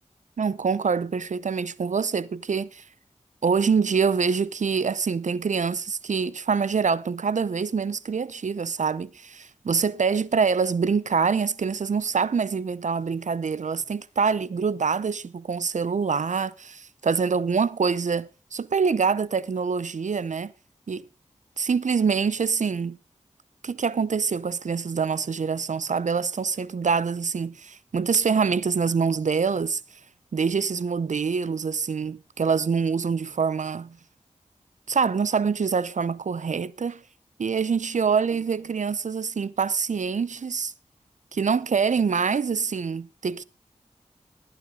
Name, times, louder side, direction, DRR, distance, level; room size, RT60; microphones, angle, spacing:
voice 1, 0.4-2.8 3.4-20.5 20.9-21.1 21.6-23.0 23.6-29.8 30.3-34.0 34.9-37.0 37.4-40.7 41.3-43.4, right 5 dB, 75° right, 0.7 m, -25 dB
20.0 x 9.0 x 3.8 m
cardioid pair, 40°, 13 cm